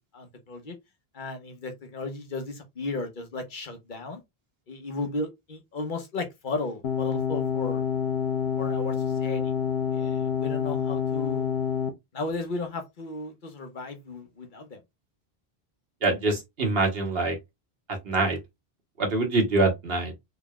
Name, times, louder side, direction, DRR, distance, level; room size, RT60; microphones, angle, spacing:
voice 1, 0.1-0.8 1.1-4.2 4.7-7.8 8.6-9.5 9.9-11.5 12.1-14.8, left 3 dB, 50° left, 1.0 m, -35 dB
sound 1, 6.8-11.9, left 7 dB, 80° left, 0.9 m, -27 dB
voice 2, 16.0-17.4 18.0-18.4 19.0-20.1, right 2 dB, 65° right, 1.4 m, -24 dB
3.8 x 3.4 x 2.3 m
omnidirectional pair, 1.1 m